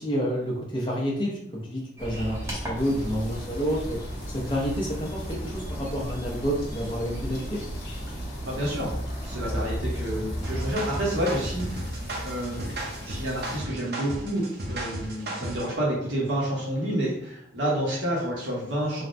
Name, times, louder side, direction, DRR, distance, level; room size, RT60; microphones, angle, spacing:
voice 1, 0.0-7.6, equal, 25° left, -4 dB, 0.6 m, -29 dB
sound 1, 2.0-10.8, equal, 15° right, 0.7 m, -35 dB
sound 2, 2.8-13.6, equal, 70° left, 0.8 m, -38 dB
voice 2, 8.5-8.9 9.2-11.9 12.2-12.8 13.0-19.0, right 1 dB, 90° right, -5 dB, 0.9 m, -29 dB
sound 3, 10.4-15.7, right 1 dB, 60° right, 0.6 m, -35 dB
3.3 x 2.1 x 2.5 m, 0.69 s
head